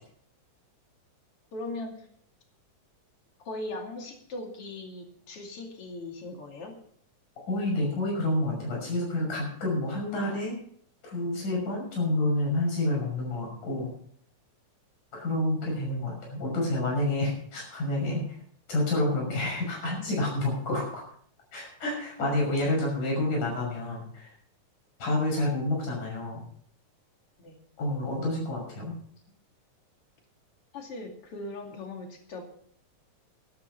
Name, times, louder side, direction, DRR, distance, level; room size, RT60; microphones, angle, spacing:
voice 1, 1.5-2.1 3.4-6.8 27.4-27.6 30.7-32.4, left 2 dB, 45° left, 2 dB, 3.3 m, -39 dB
voice 2, 7.5-10.6 11.0-13.9 15.1-18.2 18.7-21.0 21.5-24.3 25.0-26.4 27.8-29.0, left 1 dB, 70° left, -1 dB, 7.6 m, -29 dB
12.5 x 12.0 x 5.5 m, 0.62 s
omnidirectional pair, 3.6 m